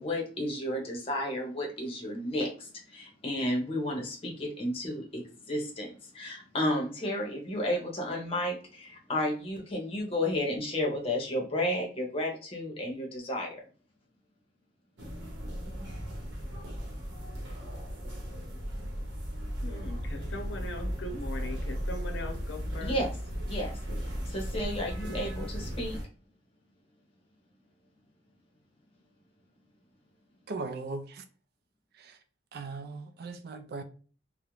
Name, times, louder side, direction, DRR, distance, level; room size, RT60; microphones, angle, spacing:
voice 1, 0.0-13.6 22.8-23.1 23.5-23.7 24.3-26.0, left 1 dB, 35° left, 0.7 m, -32 dB
sound 1, 15.0-26.1, equal, 80° right, 0.8 m, -36 dB
voice 2, 19.6-23.0, left 1 dB, 85° left, 0.6 m, -40 dB
voice 3, 30.5-31.2 32.0-32.1 32.5-33.8, right 3 dB, 60° right, 0.4 m, -38 dB
2.4 x 2.1 x 3.0 m
head